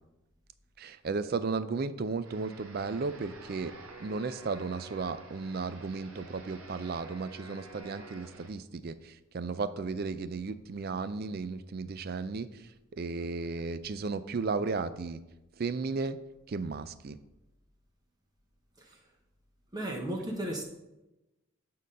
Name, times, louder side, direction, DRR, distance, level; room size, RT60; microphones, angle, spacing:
voice 1, 0.8-3.7 4.0-12.6 12.9-15.2 15.6-16.2 16.5-17.2, right 4 dB, 45° right, 13 dB, 0.4 m, -34 dB
sound 1, 2.2-8.5, right 3 dB, 80° right, 1.1 m, -50 dB
voice 2, 19.7-20.6, right 1 dB, 20° right, 0 dB, 0.8 m, -35 dB
8.7 x 3.8 x 5.3 m, 0.97 s
head